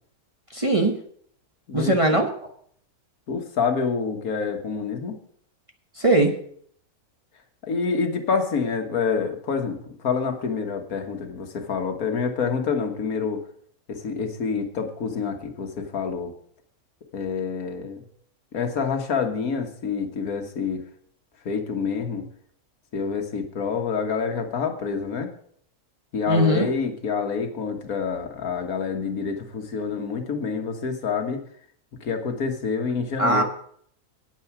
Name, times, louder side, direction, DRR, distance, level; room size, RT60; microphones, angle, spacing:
voice 1, 0.5-0.9 1.7-2.3 6.0-6.4 26.3-26.7 33.2-33.4, right 1 dB, 25° right, 2 dB, 1.0 m, -20 dB
voice 2, 3.3-5.2 7.6-13.4 13.9-16.3 17.1-18.0 18.5-20.8 21.5-22.3 22.9-25.3 26.1-31.4 32.0-33.4, left 5 dB, 70° left, 5 dB, 1.7 m, -27 dB
9.2 x 9.1 x 5.9 m, 0.63 s
omnidirectional pair, 1.6 m